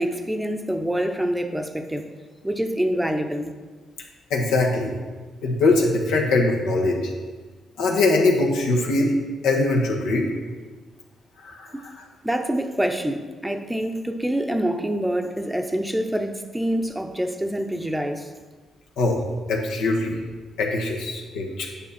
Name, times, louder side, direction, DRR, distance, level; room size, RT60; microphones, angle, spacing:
voice 1, 0.0-2.1 2.4-3.5 11.7-11.8 12.2-18.3, right 1 dB, 5° right, 5 dB, 0.7 m, -26 dB
voice 2, 4.3-4.9 5.4-7.1 7.8-9.2 9.4-10.3 11.4-12.0 19.0-19.2 19.5-20.2 20.6-21.7, left 2 dB, 90° left, 0 dB, 1.3 m, -22 dB
9.0 x 5.6 x 4.3 m, 1.4 s
cardioid pair, 90°, 0 cm